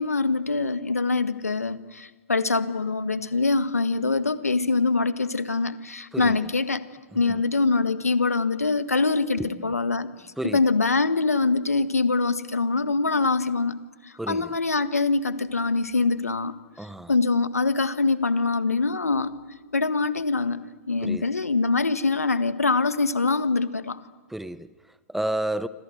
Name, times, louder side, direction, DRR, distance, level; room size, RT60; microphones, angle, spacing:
voice 1, 0.0-6.8 7.1-13.7 14.0-16.5 17.1-19.3 19.7-24.0, left 3 dB, 85° left, 1.6 m, -24 dB
voice 2, 6.1-6.5 7.1-7.4 9.3-9.8 10.4-10.6 14.2-14.5 16.8-17.1 21.0-21.3 24.3-25.7, right 1 dB, 5° right, 0.8 m, -32 dB
28.5 x 26.5 x 7.9 m
figure-of-eight pair, 115°, 8 cm